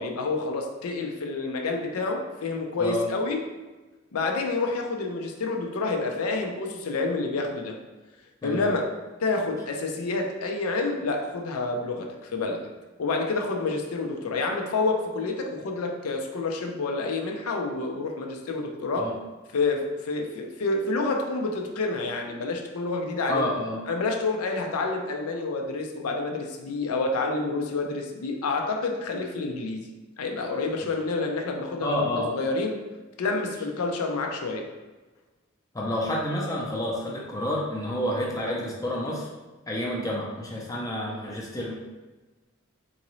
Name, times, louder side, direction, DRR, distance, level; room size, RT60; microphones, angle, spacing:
voice 1, 0.0-3.4 4.1-7.7 8.4-8.9 9.2-12.6 13.0-19.1 19.5-23.4 23.9-29.9 30.2-32.8 33.2-34.6, left 3 dB, 90° left, 2 dB, 0.5 m, -28 dB
voice 2, 23.3-23.8 31.8-32.3 35.7-39.3 39.7-41.7, left 1 dB, 15° left, -3 dB, 0.5 m, -29 dB
3.8 x 2.6 x 3.0 m, 1.2 s
head